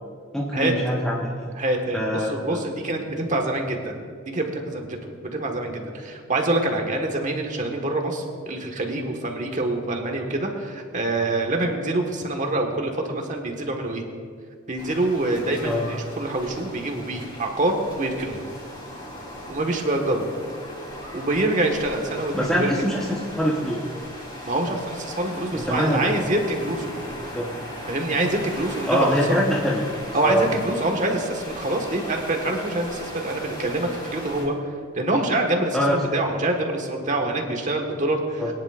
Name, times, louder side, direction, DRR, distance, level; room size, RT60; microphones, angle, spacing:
voice 1, 0.3-1.5 1.9-2.6 15.6-15.9 22.3-23.8 25.5-26.2 27.2-27.5 28.9-30.5 35.7-36.0 38.4-38.5, equal, 5° left, -5 dB, 0.9 m, -24 dB
voice 2, 1.5-3.9 4.2-14.0 14.7-18.4 19.5-20.2 21.1-22.7 24.4-26.9 27.9-29.1 30.1-38.4, right 2 dB, 35° right, 3 dB, 1.4 m, -25 dB
sound 1, 14.8-34.5, left 1 dB, 25° left, 3.4 m, -38 dB
22.0 x 10.5 x 2.5 m, 2.1 s
head